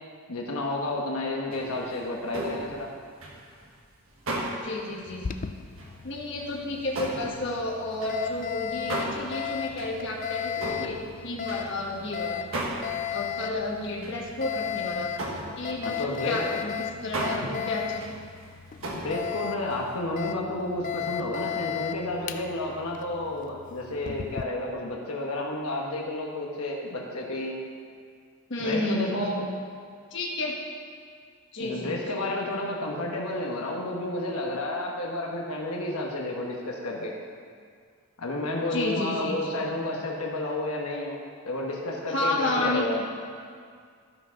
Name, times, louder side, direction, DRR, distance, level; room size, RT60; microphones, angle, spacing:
voice 1, 0.3-2.9 15.8-16.6 18.9-27.6 28.6-29.4 31.6-37.1 38.2-41.2 41.4-43.0, left 1 dB, 85° left, -1 dB, 1.2 m, -31 dB
sound 1, 1.5-4.8 5.2-5.4 5.8-6.1 6.4-12.1 12.5-13.0 13.3-13.4 13.8-14.2 14.5-14.8 15.0-19.9, right 1 dB, 65° right, 1.5 m, -36 dB
voice 2, 4.6-5.3 6.0-12.4 13.1-15.1 15.6-15.9 16.2-16.7 17.0-18.0 28.5-29.4 30.1-30.6 31.5-32.2 38.7-39.3 42.1-43.0, left 2 dB, 55° left, -2 dB, 1.4 m, -31 dB
Alarm, 5.1-24.4, left 9 dB, 35° left, 0.3 m, -36 dB
13.5 x 4.9 x 5.7 m, 2.1 s
head